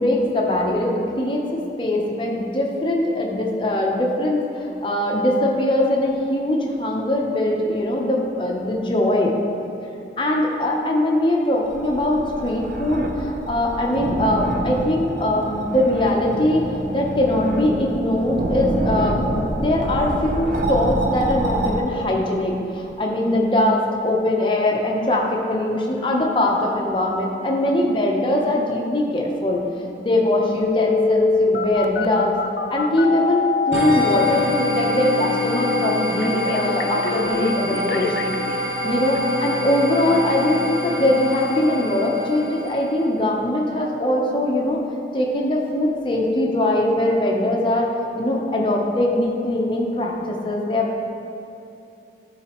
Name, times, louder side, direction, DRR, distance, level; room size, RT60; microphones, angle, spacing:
voice 1, 0.0-4.4 4.8-9.3 10.2-16.7 16.9-29.6 30.0-32.4 32.7-38.4 38.8-44.8 45.1-47.9 48.2-51.1, left 1 dB, 30° left, -1 dB, 0.7 m, -21 dB
sound 1, 11.6-21.8, right 1 dB, 45° right, 0.5 m, -27 dB
Telephone, 30.6-38.6 39.1-39.2, left 5 dB, 60° left, 0.3 m, -24 dB
sound 2, 33.7-43.1, equal, 70° right, 0.9 m, -26 dB
12.0 x 4.0 x 3.0 m, 2.7 s
head